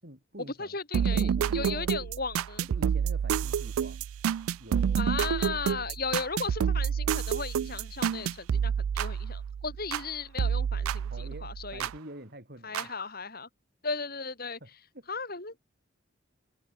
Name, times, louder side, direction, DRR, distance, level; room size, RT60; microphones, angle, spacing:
voice 1, 0.0-0.8 1.1-2.1 2.7-4.0 4.6-5.3 11.1-12.9 14.6-15.1, right 1 dB, 45° right, 7.0 m, -46 dB
voice 2, 0.6-2.7 5.0-11.1 11.4-11.9 12.6-13.5 13.8-14.6 15.1-15.5, left 4 dB, 45° left, 3.7 m, -36 dB
sound 1, 0.9-10.1 10.4-12.0 12.7-12.8, right 7 dB, 85° right, 0.3 m, -29 dB
head